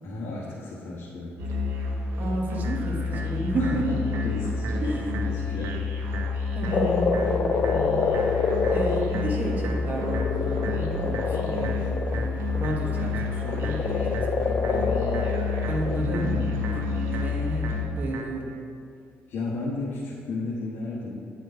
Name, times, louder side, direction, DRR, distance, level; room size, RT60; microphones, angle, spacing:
voice 1, 0.0-1.4 3.6-5.8 15.9-17.4 19.3-21.2, left 3 dB, 65° left, -5 dB, 1.1 m, -34 dB
Musical instrument, 1.4-17.8, left 4 dB, 85° right, 1.2 m, -29 dB
voice 2, 2.2-3.8 4.7-5.1 6.5-8.3 8.7-15.2 15.7-16.3 17.1-17.7 17.9-18.6, right 2 dB, 40° right, 0 dB, 1.2 m, -32 dB
sound 1, 2.6-18.6, right 4 dB, 65° right, 0.7 m, -40 dB
Frog, 6.7-12.6 13.4-16.0, left 5 dB, 45° left, 0.4 m, -27 dB
8.8 x 5.0 x 4.6 m, 2.3 s
cardioid pair, 145°, 5 cm